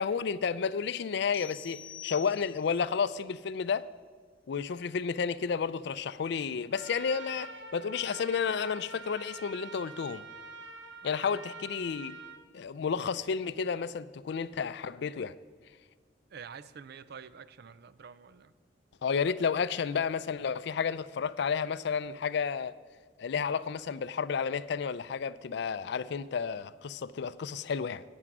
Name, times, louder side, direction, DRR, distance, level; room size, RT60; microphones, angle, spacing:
voice 1, 0.0-3.9 4.5-10.2 11.0-12.2 12.5-15.3 19.0-22.7 23.2-28.0, left 6 dB, 70° left, 0.4 m, -31 dB
sound 1, 1.3-2.9, left 10 dB, 35° left, 1.1 m, -46 dB
Trumpet, 6.7-12.4, right 3 dB, 80° right, 1.1 m, -46 dB
voice 2, 16.3-18.5, right 6 dB, 60° right, 0.5 m, -48 dB
11.0 x 8.7 x 6.1 m
head